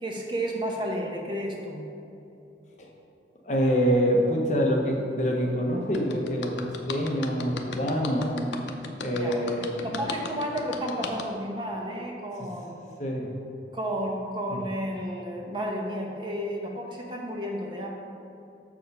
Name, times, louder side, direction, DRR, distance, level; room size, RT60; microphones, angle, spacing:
voice 1, 0.0-1.9 9.2-9.3 9.8-12.8 13.7-17.9, equal, 25° right, 0 dB, 0.8 m, -32 dB
voice 2, 3.4-8.5 9.0-10.0 13.0-13.3, equal, 40° left, 0 dB, 0.9 m, -26 dB
sound 1, 5.9-11.2, left 4 dB, 85° left, 0.6 m, -36 dB
6.5 x 4.9 x 5.4 m, 2.7 s
head